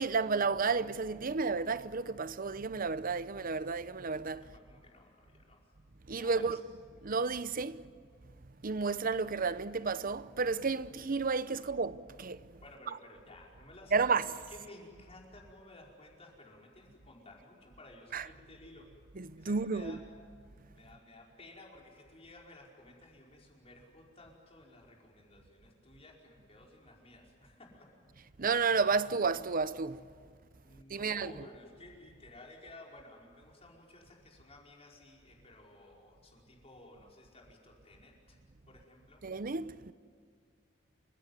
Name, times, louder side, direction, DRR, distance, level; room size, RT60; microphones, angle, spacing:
voice 1, 0.0-4.5 6.1-6.6 7.0-7.8 8.6-12.6 13.9-14.3 18.1-18.3 19.2-20.0 28.4-30.0 30.9-31.3 39.2-39.9, right 4 dB, 45° right, 0.8 m, -32 dB
voice 2, 4.4-5.7 6.1-6.6 11.6-11.7 12.6-18.9 19.4-20.0 20.7-27.9 30.6-38.4 38.7-39.2, left 2 dB, 30° left, 5.0 m, -55 dB
29.0 x 16.5 x 9.5 m
head